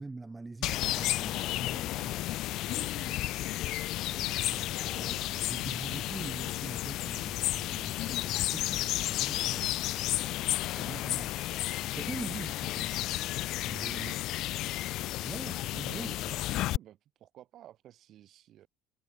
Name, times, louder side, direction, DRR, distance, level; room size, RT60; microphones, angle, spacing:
voice 1, 0.0-2.2 2.9-3.2 4.1-9.9 10.2-11.4 11.8-12.9 13.6-14.2 15.2-16.2, right 3 dB, 15° right, 0.9 m, -44 dB
sound 1, 0.6-16.8, left 16 dB, 60° left, 0.6 m, -32 dB
voice 2, 2.6-3.3 13.9-14.2 15.8-18.7, right 12 dB, 50° right, 5.1 m, -53 dB
cardioid pair, 125°, 0 cm